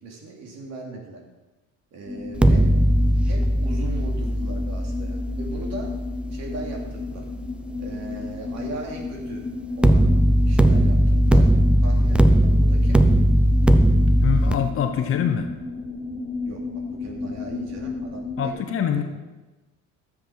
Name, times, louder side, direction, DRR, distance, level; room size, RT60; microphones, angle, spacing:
voice 1, 0.0-1.2 1.9-2.7 3.2-5.9 6.3-7.3 7.8-9.4 9.8-10.1 10.4-11.5 11.8-13.0 16.5-16.6 17.0-18.5, right 3 dB, 55° right, 0 dB, 2.7 m, -38 dB
sound 1, 2.1-18.5, left 4 dB, 15° left, 3.5 m, -34 dB
sound 2, 2.3-7.4 9.8-14.5, right 1 dB, 5° right, 0.4 m, -19 dB
voice 2, 14.2-15.5 18.4-19.0, left 8 dB, 40° left, 6 dB, 1.1 m, -24 dB
13.5 x 7.7 x 5.7 m, 1.1 s
cardioid pair, 155°, 33 cm